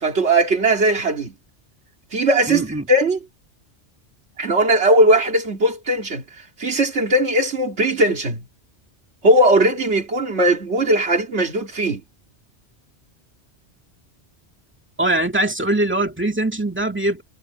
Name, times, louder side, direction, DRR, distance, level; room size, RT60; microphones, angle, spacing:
voice 1, 0.0-1.3 2.1-3.2 4.4-6.2 6.6-8.4 9.2-12.0, right 1 dB, 75° right, 2.5 m, -18 dB
voice 2, 2.5-2.9 15.0-17.2, right 1 dB, 10° right, 2.2 m, -22 dB
omnidirectional pair, 1.1 m